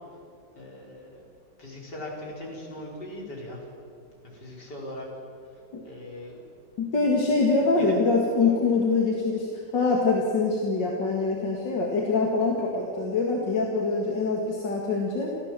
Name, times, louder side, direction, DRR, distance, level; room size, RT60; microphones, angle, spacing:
voice 1, 0.6-1.2 1.6-3.6 4.3-5.1 5.8-6.4 7.8-7.9, left 1 dB, 70° left, -2 dB, 5.3 m, -39 dB
voice 2, 6.8-15.3, left 3 dB, 85° left, -1 dB, 2.8 m, -24 dB
29.5 x 14.0 x 7.6 m, 2.5 s
omnidirectional pair, 1.9 m